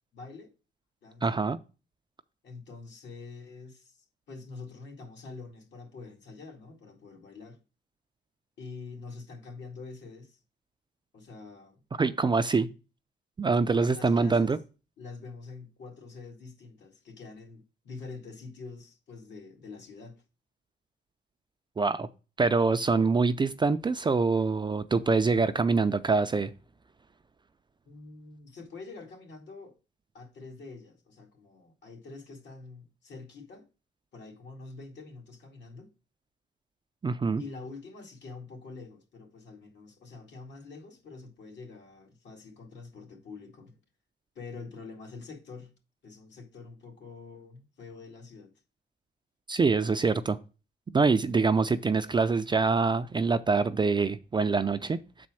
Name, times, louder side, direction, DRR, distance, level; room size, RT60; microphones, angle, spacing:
voice 1, 0.1-0.5 1.0-1.4 2.4-7.6 8.6-10.4 11.1-11.8 13.6-14.5 15.0-20.2 27.9-29.8 30.1-33.7 34.1-35.9 37.4-43.8 44.4-45.7 46.0-48.5, left 4 dB, 65° left, 2.2 m, -46 dB
voice 2, 1.2-1.6 12.0-12.7 13.4-14.6 21.8-22.1 22.4-26.5 37.0-37.4 49.5-50.4 50.9-55.3, right 4 dB, 25° right, 0.4 m, -25 dB
6.2 x 4.3 x 6.1 m
cardioid pair, 90°, 20 cm